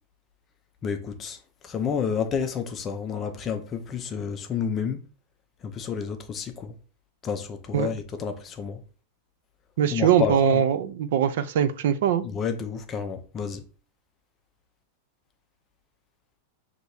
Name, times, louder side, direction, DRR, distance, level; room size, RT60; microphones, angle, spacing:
voice 1, 0.8-1.4 1.6-5.0 5.6-6.7 7.2-8.8 9.9-10.6 12.2-13.6, left 7 dB, 20° left, 0.6 m, -30 dB
voice 2, 9.8-12.2, right 9 dB, 65° right, 0.5 m, -22 dB
6.1 x 2.9 x 2.7 m
supercardioid pair, 155°, 0 cm